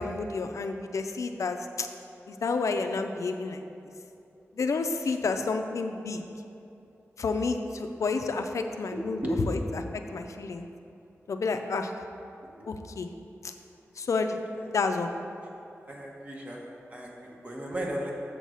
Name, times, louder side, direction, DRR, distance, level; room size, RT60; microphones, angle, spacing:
voice 1, 0.0-1.9 2.3-3.6 4.5-6.2 7.2-9.2 9.5-10.7 11.3-11.9 12.7-13.1 13.4-13.5 14.0-14.4 14.7-15.1, left 4 dB, 85° left, 6 dB, 0.4 m, -30 dB
voice 2, 8.9-9.5 9.9-10.0 12.4-12.7 14.6-14.7 15.9-18.1, right 1 dB, 30° right, -2 dB, 1.2 m, -35 dB
7.3 x 4.0 x 6.3 m, 2.7 s
wide cardioid pair, 100°, 5 cm